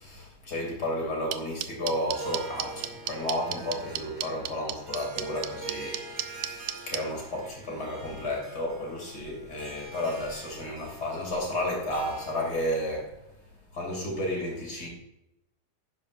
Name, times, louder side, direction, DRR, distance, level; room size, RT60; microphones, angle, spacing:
voice 1, 0.0-13.1 13.7-14.9, left 1 dB, 30° left, 3.1 m, -32 dB
sound 1, 1.3-7.0, right 13 dB, 80° right, 2.0 m, -31 dB
Harp, 1.9-12.9, right 4 dB, 35° right, 2.1 m, -44 dB
11.5 x 9.9 x 2.6 m
omnidirectional pair, 3.9 m